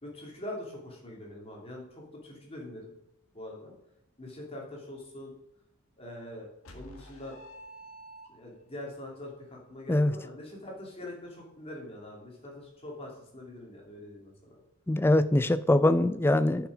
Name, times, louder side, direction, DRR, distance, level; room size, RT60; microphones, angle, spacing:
voice 1, 0.0-2.9 3.3-3.7 4.2-5.3 6.0-6.5 6.7-7.4 8.3-14.5, left 1 dB, 25° left, -2 dB, 2.8 m, -43 dB
sound 1, 6.6-8.7, right 1 dB, 80° left, 1.7 m, -48 dB
voice 2, 14.9-16.7, left 1 dB, 10° left, 13 dB, 0.3 m, -23 dB
10.5 x 6.2 x 5.0 m, 0.82 s
head